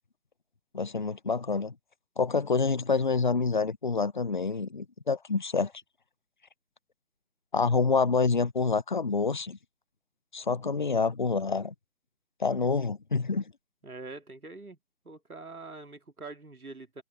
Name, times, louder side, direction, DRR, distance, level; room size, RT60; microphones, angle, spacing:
voice 1, 0.7-1.7 2.2-5.7 7.5-9.6 10.3-11.7 12.4-13.4, left 4 dB, 35° left, 0.5 m, -27 dB
voice 2, 13.8-14.8 15.0-17.0, right 3 dB, 85° right, 2.4 m, -44 dB
figure-of-eight pair, 150°, 43 cm